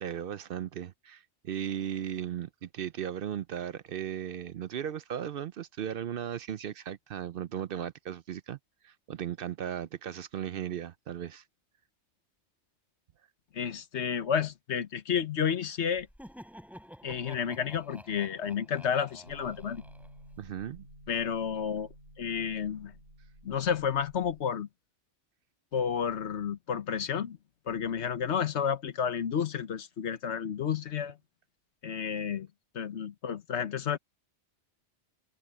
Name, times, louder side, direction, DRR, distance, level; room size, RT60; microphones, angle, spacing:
voice 1, 0.0-8.6 8.8-11.4 20.4-20.9, right 9 dB, 60° right, 0.7 m, -36 dB
voice 2, 13.5-16.1 17.0-19.8 21.1-21.9 22.2-22.9 23.4-24.7 25.7-27.4 27.7-31.2 31.8-32.5 32.7-34.0, left 7 dB, 80° left, 1.3 m, -31 dB
Laughter, 15.9-20.6, equal, ahead, 5.1 m, -50 dB
sound 1, 19.3-24.4, equal, 75° right, 6.0 m, -53 dB
omnidirectional pair, 1.2 m